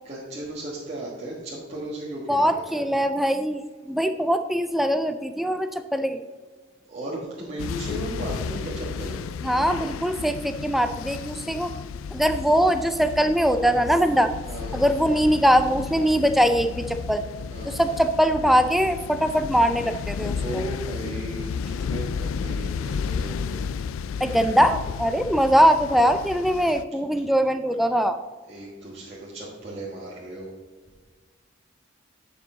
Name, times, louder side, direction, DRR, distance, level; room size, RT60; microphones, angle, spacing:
voice 1, 0.0-2.8 6.9-9.2 14.5-14.9 17.5-17.8 20.3-23.6 28.5-30.5, right 1 dB, 30° right, -7 dB, 1.5 m, -36 dB
voice 2, 2.3-6.2 9.4-11.7 12.1-14.3 14.7-17.2 17.7-20.6 24.2-28.2, equal, ahead, 8 dB, 0.4 m, -22 dB
sound 1, 7.6-26.8, left 6 dB, 85° left, 0.3 m, -33 dB
9.9 x 6.3 x 3.8 m, 1.4 s
head